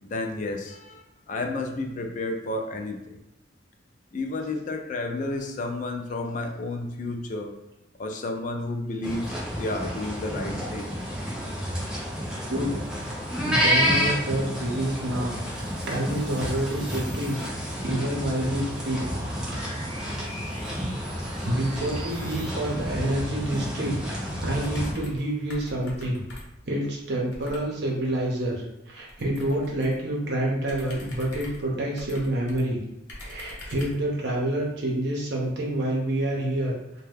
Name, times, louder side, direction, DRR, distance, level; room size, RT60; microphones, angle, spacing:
voice 1, 0.0-3.2 4.1-7.5 8.0-10.9, left 2 dB, 40° left, 3 dB, 0.3 m, -31 dB
sound 1, 9.0-24.9, equal, 5° right, 0.6 m, -30 dB
voice 2, 13.4-17.4 17.8-19.0 21.0-26.2 26.7-32.8 33.2-37.0, right 1 dB, 60° right, -2 dB, 0.8 m, -28 dB
sound 2, 15.1-26.0, right 1 dB, 30° right, 0.8 m, -46 dB
sound 3, 24.5-25.3 25.5-26.7 27.3-27.7 29.1-30.0 30.6-32.6 33.1-34.0, left 1 dB, 70° left, 0.8 m, -43 dB
2.7 x 2.2 x 3.4 m, 0.90 s
head